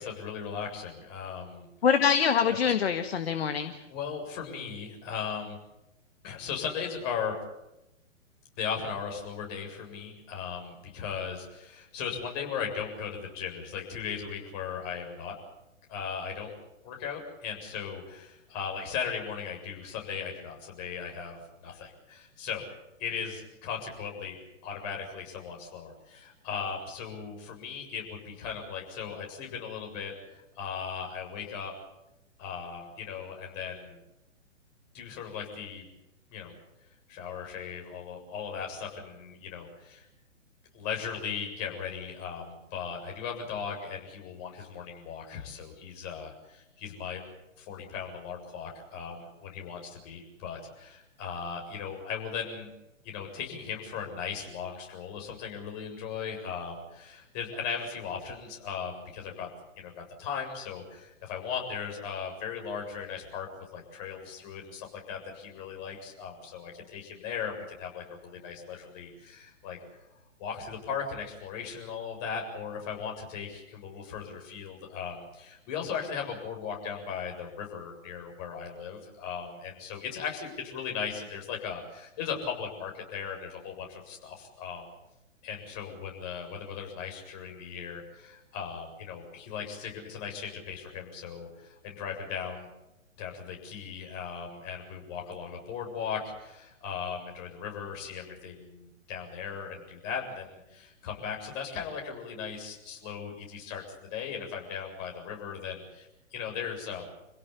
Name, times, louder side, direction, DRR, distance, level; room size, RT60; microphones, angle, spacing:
voice 1, 0.0-1.7 3.9-5.6 6.2-7.4 8.6-15.3 15.9-16.5 16.8-24.4 24.6-31.7 32.4-34.0 34.9-35.9 36.3-36.5 37.1-40.1 40.7-47.2 47.6-52.7 53.0-59.5 59.8-63.5 63.7-69.8 70.4-84.8 85.4-92.7 93.2-107.1, left 7 dB, 30° left, 1 dB, 7.5 m, -37 dB
voice 2, 1.8-3.9, left 7 dB, 50° left, 9 dB, 1.7 m, -25 dB
28.5 x 17.0 x 8.6 m, 0.91 s
figure-of-eight pair, 120°, 38 cm